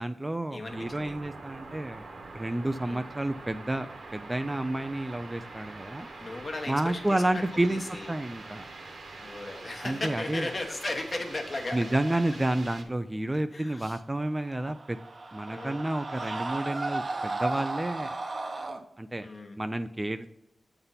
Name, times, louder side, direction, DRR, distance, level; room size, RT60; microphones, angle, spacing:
voice 1, 0.0-2.1 2.3-3.9 4.1-6.1 6.7-7.8 8.1-8.6 9.8-10.5 11.7-15.0 15.3-18.1 19.0-19.3 19.6-20.3, right 1 dB, 15° right, 9 dB, 0.3 m, -30 dB
voice 2, 0.5-1.2 2.8-3.0 6.2-7.4 7.7-8.1 9.2-12.2 13.5-14.0 15.5-15.8 19.2-19.6, left 2 dB, 40° left, 3 dB, 1.2 m, -36 dB
sound 1, 0.7-12.8, right 3 dB, 65° right, 1.3 m, -44 dB
Screaming, 14.3-18.8, right 2 dB, 45° right, 0.8 m, -34 dB
7.8 x 4.0 x 5.6 m, 0.84 s
wide cardioid pair, 100°, 0 cm